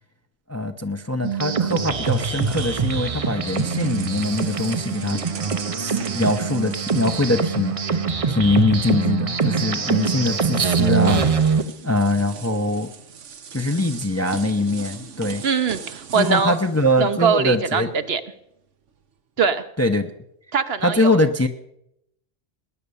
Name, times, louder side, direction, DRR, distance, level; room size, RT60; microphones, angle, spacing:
voice 1, 0.5-5.2 5.8-11.2 11.8-12.9 13.5-15.4 16.1-17.9 19.8-20.1 20.8-21.5, left 1 dB, 15° left, 6 dB, 0.7 m, -22 dB
sound 1, 1.2-11.6, right 5 dB, 35° right, 0.7 m, -23 dB
sound 2, 1.2-8.4 8.7-8.9 10.0-10.1 10.5-17.7, right 6 dB, 75° right, 1.3 m, -40 dB
voice 2, 15.4-16.6 17.0-18.2 19.4-19.6 20.5-21.2, right 6 dB, 55° right, 10 dB, 1.0 m, -22 dB
19.5 x 10.0 x 6.9 m, 0.79 s
omnidirectional pair, 1.3 m